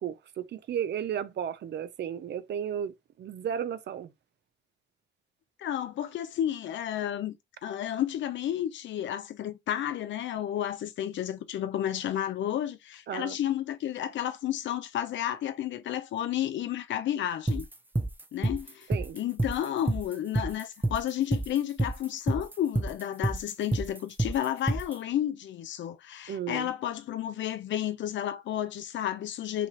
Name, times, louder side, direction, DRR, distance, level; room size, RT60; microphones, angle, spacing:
voice 1, 0.0-4.1 13.1-13.4 18.9-19.2 26.3-26.7, right 9 dB, 60° right, 0.7 m, -34 dB
voice 2, 5.6-7.4 7.6-17.6 18.3-18.9 19.1-29.7, left 11 dB, 70° left, 0.7 m, -31 dB
sound 1, 17.5-25.0, right 2 dB, 10° right, 0.7 m, -29 dB
5.9 x 2.5 x 3.2 m
cardioid pair, 90°, 20 cm